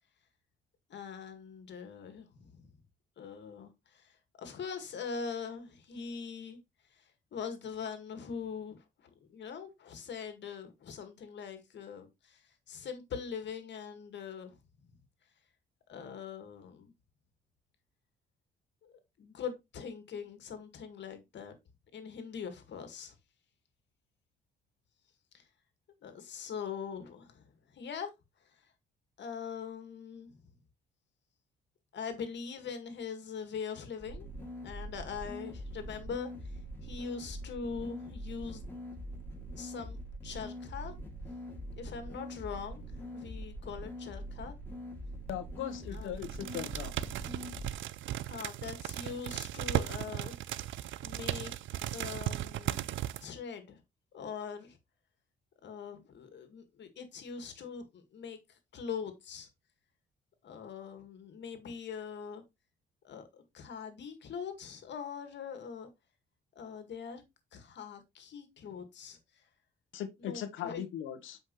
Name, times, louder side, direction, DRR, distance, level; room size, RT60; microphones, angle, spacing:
voice 1, 0.9-2.7 3.2-6.6 6.9-8.8 9.3-14.6 15.9-16.9 18.8-21.6 21.9-23.1 25.3-25.4 26.0-28.1 29.2-30.4 31.9-34.3 34.6-36.3 36.8-38.7 39.6-40.9 41.8-44.5 45.9-46.3 48.3-50.4 51.0-52.9 53.2-53.8 54.1-54.8 55.6-59.5 60.4-62.4 63.0-65.9 66.6-67.2 67.5-69.4 70.2-70.8, left 6 dB, 65° left, 2.0 m, -42 dB
sound 1, 34.0-47.7, equal, 10° left, 2.8 m, -43 dB
voice 2, 45.3-46.9 69.9-71.4, left 10 dB, 85° left, 1.2 m, -39 dB
sound 2, 45.7-46.0 46.2-53.2, right 13 dB, 75° right, 0.5 m, -36 dB
7.8 x 5.2 x 3.1 m
cardioid pair, 90°, 20 cm